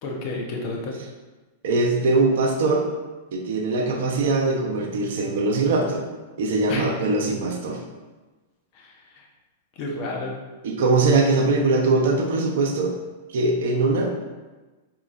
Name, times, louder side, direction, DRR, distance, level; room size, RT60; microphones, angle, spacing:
voice 1, 0.0-0.9 6.7-6.9 8.7-9.3 9.7-10.3, left 2 dB, 50° left, -1 dB, 0.9 m, -31 dB
voice 2, 1.6-2.9 3.3-6.1 6.4-7.8 10.6-13.0 13.3-14.1, right 3 dB, 65° right, 1 dB, 0.7 m, -21 dB
4.4 x 2.8 x 2.5 m, 1.2 s
hypercardioid pair, 110°, 0 cm